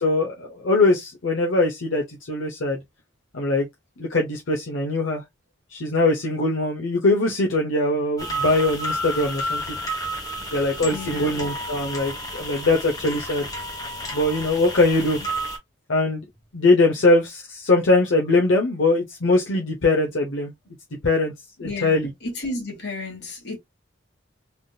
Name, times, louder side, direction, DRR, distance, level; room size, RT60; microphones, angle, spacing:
voice 1, 0.0-2.8 3.3-3.7 4.0-5.2 5.7-9.8 10.5-13.5 14.1-15.2 15.9-16.2 16.5-20.5 21.0-21.3 21.6-22.1, left 2 dB, 80° left, 0.8 m, -21 dB
sound 1, 8.2-15.6, equal, 20° left, 0.9 m, -31 dB
voice 2, 10.9-11.4 13.3-13.4 21.6-23.6, left 2 dB, 55° left, 1.5 m, -33 dB
3.5 x 2.6 x 2.3 m
head